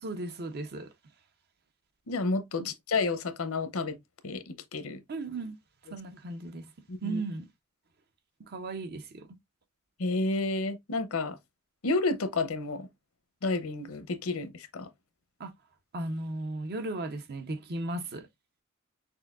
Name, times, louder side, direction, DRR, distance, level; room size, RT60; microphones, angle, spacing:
voice 1, 0.0-0.9 2.5-2.7 5.1-5.6 5.9-6.7 7.0-7.5 8.4-9.3 15.4-15.5 15.9-18.3, right 2 dB, 50° right, 0.6 m, -36 dB
voice 2, 2.1-4.0 4.2-5.0 6.9-7.2 10.0-11.4 11.8-12.9 13.4-14.9, left 3 dB, 75° left, 0.7 m, -30 dB
6.1 x 2.6 x 2.4 m
head